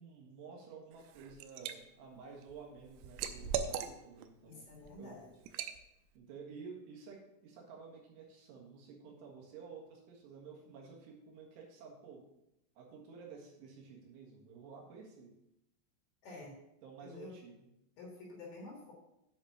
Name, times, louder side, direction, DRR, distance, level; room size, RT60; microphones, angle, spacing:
voice 1, 0.0-4.7 5.0-5.1 6.2-12.2 12.8-15.3 16.8-17.7, right 5 dB, 70° right, -1 dB, 3.9 m, -52 dB
Liquid, 0.9-1.8 2.2-4.3 4.7-4.9 5.5-5.8, right 8 dB, 90° right, 3.3 m, -39 dB
voice 2, 4.5-5.3 16.2-16.6 17.0-17.4 18.0-18.9, left 2 dB, 60° left, -1 dB, 3.0 m, -49 dB
8.6 x 5.2 x 6.9 m, 0.86 s
omnidirectional pair, 6.0 m